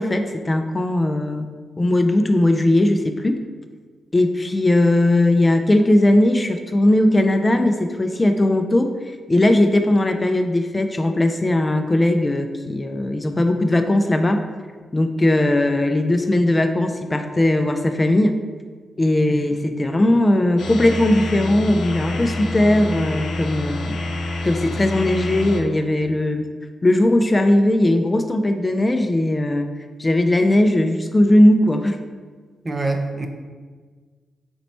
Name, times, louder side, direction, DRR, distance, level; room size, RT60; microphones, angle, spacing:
voice 1, 0.0-1.5 1.8-3.4 4.1-14.4 14.9-18.3 19.0-24.0 24.4-26.5 26.8-29.7 30.0-32.0, left 1 dB, 30° left, 6 dB, 0.4 m, -18 dB
sound 1, 20.6-25.6, left 2 dB, 75° left, 0.6 m, -27 dB
voice 2, 32.6-33.3, right 2 dB, 35° right, 4 dB, 0.6 m, -25 dB
4.3 x 3.0 x 4.1 m, 1.5 s
supercardioid pair, 40°, 0 cm